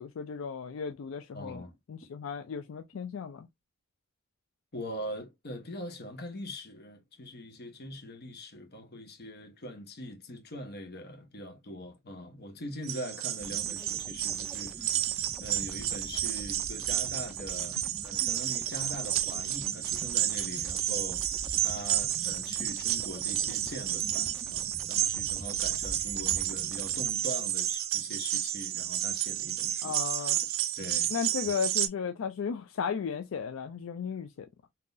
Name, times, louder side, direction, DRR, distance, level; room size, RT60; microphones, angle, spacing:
voice 1, 0.0-1.6 1.9-3.5 29.8-30.4 31.1-34.5, left 6 dB, 80° left, 0.4 m, -35 dB
voice 2, 1.3-1.8 4.7-30.5 30.7-31.1 31.4-31.5, equal, 55° left, 1.1 m, -42 dB
sound 1, 12.8-31.9, right 12 dB, 80° right, 0.5 m, -31 dB
sound 2, 13.4-27.1, equal, ahead, 0.3 m, -46 dB
3.8 x 2.8 x 2.5 m
head